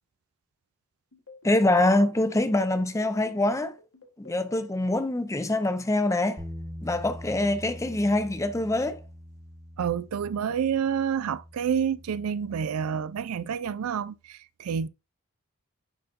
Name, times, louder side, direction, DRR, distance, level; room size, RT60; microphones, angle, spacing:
sound 1, 1.1-5.0, left 1 dB, 80° left, 1.9 m, -50 dB
voice 1, 1.4-3.8 4.2-6.4 6.8-9.0, left 2 dB, 15° left, 0.5 m, -24 dB
Bass guitar, 6.4-12.6, equal, 10° right, 1.0 m, -43 dB
voice 2, 9.8-14.9, right 7 dB, 75° right, 0.4 m, -28 dB
9.8 x 3.9 x 2.5 m
head